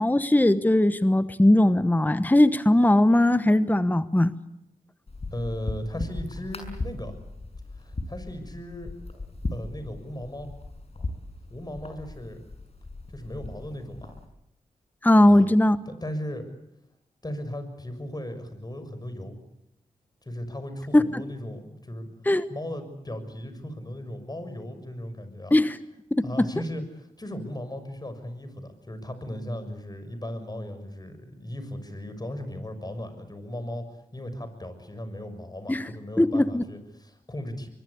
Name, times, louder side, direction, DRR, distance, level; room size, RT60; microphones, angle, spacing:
voice 1, 0.0-4.3 15.0-15.8 20.9-21.2 22.3-22.4 25.5-25.8 26.1-26.5 35.7-35.9 36.2-36.6, left 1 dB, 10° left, 13 dB, 1.1 m, -19 dB
sound 1, 5.1-14.2, left 2 dB, 45° left, 6.5 m, -38 dB
voice 2, 5.3-7.2 7.7-8.9 9.5-10.5 11.5-12.4 13.1-14.1 15.2-15.5 15.9-16.5 17.2-19.4 20.2-22.1 22.5-25.5 26.2-37.7, left 1 dB, 25° left, 10 dB, 6.5 m, -37 dB
24.0 x 22.5 x 8.4 m, 0.84 s
cardioid pair, 45°, 15 cm